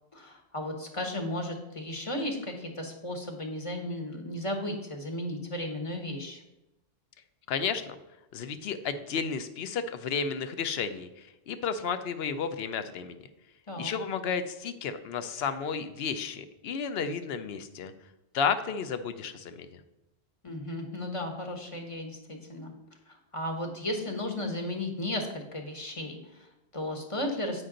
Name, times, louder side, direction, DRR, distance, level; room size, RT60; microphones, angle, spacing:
voice 1, 0.1-6.4 13.7-13.9 20.4-22.7 23.1-27.7, left 1 dB, 30° left, 3 dB, 1.0 m, -35 dB
voice 2, 7.5-8.0 8.3-13.2 13.8-17.9 18.3-19.8, left 6 dB, 70° left, 10 dB, 0.8 m, -32 dB
7.9 x 5.5 x 3.8 m, 0.96 s
omnidirectional pair, 1.1 m